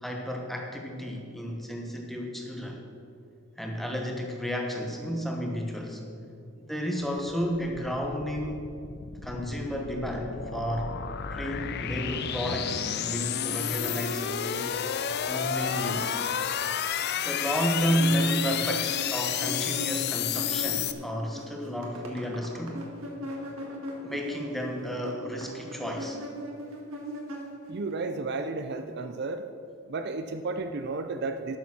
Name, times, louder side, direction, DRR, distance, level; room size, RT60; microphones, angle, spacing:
voice 1, 0.0-2.8 3.6-6.0 6.7-8.6 9.2-10.9 11.3-14.7 15.3-16.2 17.2-22.8 24.0-26.2, equal, ahead, 1 dB, 1.1 m, -32 dB
sound 1, 7.2-20.9, left 8 dB, 50° left, 0.5 m, -31 dB
sound 2, 17.8-21.0 21.2-27.9, left 1 dB, 75° right, 1.8 m, -38 dB
voice 2, 27.7-29.4 29.9-31.6, right 3 dB, 50° right, 8 dB, 0.5 m, -33 dB
12.0 x 7.2 x 6.0 m, 2.6 s
head